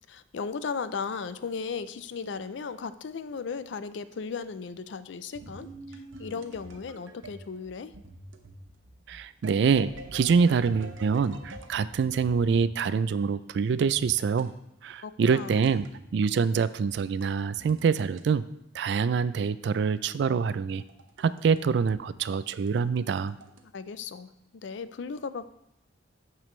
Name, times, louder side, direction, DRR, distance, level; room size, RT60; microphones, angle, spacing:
voice 1, 0.1-7.9 15.0-15.6 23.6-25.5, left 5 dB, 65° left, 13 dB, 0.4 m, -36 dB
sound 1, 5.3-12.9 14.0-14.5 15.6-16.1 16.9-18.2 19.7-21.6 21.9-22.0 22.6-23.6, right 2 dB, 90° right, 0.8 m, -46 dB
voice 2, 9.1-14.5 14.8-15.8 16.1-18.5 18.7-20.8 21.2-23.3, right 5 dB, 60° right, 16 dB, 0.3 m, -25 dB
8.9 x 6.8 x 3.2 m, 0.80 s
head